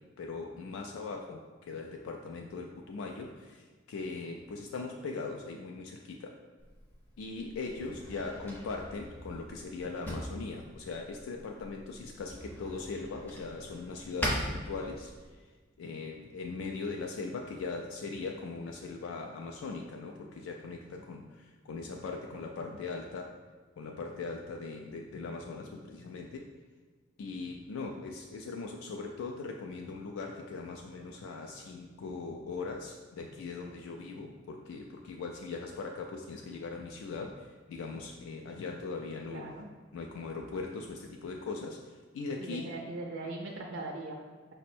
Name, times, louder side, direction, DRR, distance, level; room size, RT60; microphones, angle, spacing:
voice 1, 0.0-6.3 7.2-15.5 15.8-23.3 23.8-26.5 27.2-39.5 39.9-42.7, left 4 dB, 80° left, 2 dB, 0.3 m, -40 dB
Drawer open or close, 6.6-15.3, equal, 10° left, 0.5 m, -41 dB
voice 2, 39.3-39.7 42.4-44.2, right 2 dB, 65° right, 1 dB, 0.4 m, -40 dB
5.2 x 2.0 x 4.2 m, 1.5 s
head